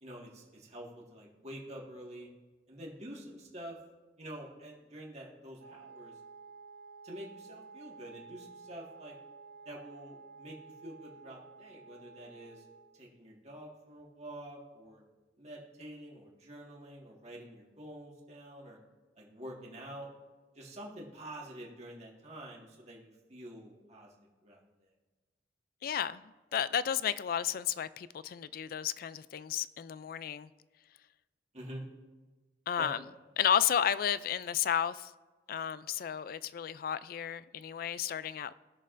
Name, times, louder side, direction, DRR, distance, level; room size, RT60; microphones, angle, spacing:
voice 1, 0.0-2.3 2.7-3.8 4.2-6.1 7.0-9.1 9.7-12.6 13.0-15.0 15.4-18.8 19.2-20.1 20.6-24.1 24.4-24.6 31.5-31.9 32.8-32.9, right 1 dB, 40° right, 1.7 m, -47 dB
Wind instrument woodwind instrument, 5.6-13.0, right 4 dB, 85° right, 1.3 m, -52 dB
voice 2, 25.8-30.5 32.7-33.0 33.4-35.1 35.5-38.5, left 9 dB, 50° left, 0.3 m, -32 dB
19.5 x 6.6 x 2.6 m
head